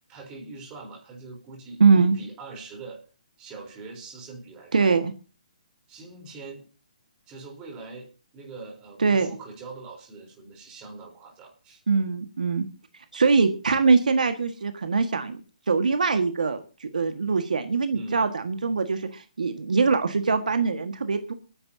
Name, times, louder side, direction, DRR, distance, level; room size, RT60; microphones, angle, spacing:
voice 1, 0.1-3.0 3.4-4.9 5.9-6.6 7.3-11.8 13.2-13.3 17.9-18.3, right 3 dB, 15° right, 0 dB, 3.9 m, -42 dB
voice 2, 1.8-2.1 4.7-5.1 9.0-9.3 11.9-12.6 13.1-15.4 15.7-21.3, right 4 dB, 85° right, 8 dB, 1.7 m, -22 dB
28.5 x 9.9 x 2.8 m, 0.34 s
hypercardioid pair, 165°, 4 cm